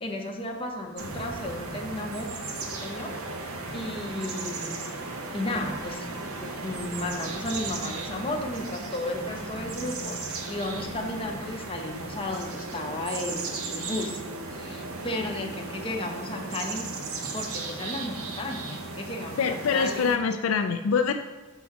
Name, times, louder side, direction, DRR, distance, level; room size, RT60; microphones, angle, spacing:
voice 1, 0.0-2.3 2.6-3.2 3.7-4.8 5.3-14.2 14.5-16.9 17.3-20.1, left 1 dB, 25° left, 1 dB, 0.8 m, -34 dB
sound 1, 1.0-20.2, right 3 dB, 90° right, 0.9 m, -36 dB
voice 2, 19.4-21.1, left 5 dB, 70° left, 6 dB, 0.4 m, -24 dB
6.0 x 3.8 x 5.9 m, 1.2 s
head